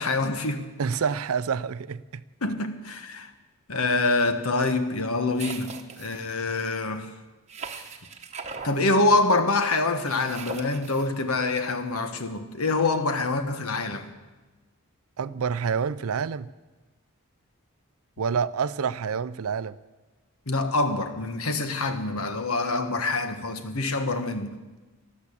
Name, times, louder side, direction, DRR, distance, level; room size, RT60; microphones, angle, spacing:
voice 1, 0.0-0.6 2.4-3.3 3.7-7.1 8.6-14.1 20.5-24.6, left 3 dB, 75° left, 1.3 m, -25 dB
voice 2, 0.8-2.2 15.2-16.5 18.2-19.8, right 6 dB, 70° right, 0.5 m, -28 dB
sound 1, 5.4-6.3 7.5-8.8 10.1-11.1, right 5 dB, 30° right, 1.0 m, -39 dB
13.0 x 12.0 x 8.5 m
head